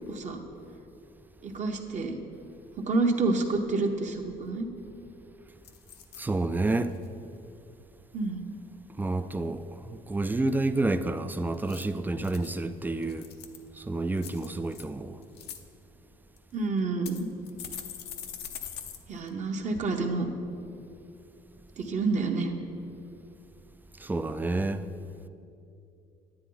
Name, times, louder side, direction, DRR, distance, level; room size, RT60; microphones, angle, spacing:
voice 1, 0.1-0.4 1.4-2.2 2.9-4.7 8.1-8.4 16.5-17.3 19.1-20.3 21.8-22.5, right 3 dB, 45° right, 1.0 m, -28 dB
sound 1, 4.9-5.2 5.6-6.2 6.7-7.1 11.5-12.5 13.0-13.7 14.2-14.8 15.2-15.6 16.4-16.5 17.1-19.0 19.3-19.4 19.7-19.8, left 9 dB, 75° left, 0.7 m, -42 dB
voice 2, 6.2-6.9 9.0-13.3 13.8-15.2 24.0-24.8, right 2 dB, 10° right, 0.3 m, -29 dB
9.9 x 9.3 x 3.9 m
cardioid pair, 110°, 17 cm